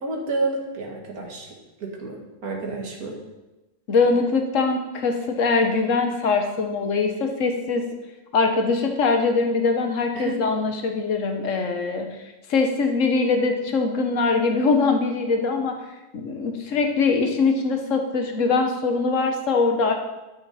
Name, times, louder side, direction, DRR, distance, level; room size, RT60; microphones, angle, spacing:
voice 1, 0.0-1.5 1.8-3.2 10.1-10.4, right 3 dB, 75° right, 0 dB, 2.3 m, -30 dB
voice 2, 3.9-7.8 8.3-12.1 12.5-15.7 16.1-19.9, left 4 dB, 55° left, 5 dB, 1.5 m, -22 dB
13.0 x 6.7 x 4.2 m, 1.0 s
omnidirectional pair, 1.6 m